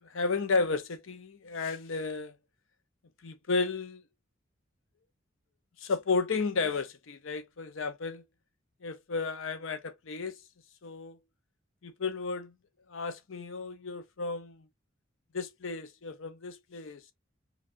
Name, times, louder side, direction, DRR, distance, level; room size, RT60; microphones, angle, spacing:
voice 1, 0.0-2.3 3.2-4.0 5.8-8.2 8.8-10.4 10.8-11.2 11.8-12.5 12.9-14.6 15.3-17.0, left 4 dB, 85° left, 0.7 m, -33 dB
4.8 x 2.4 x 2.5 m
head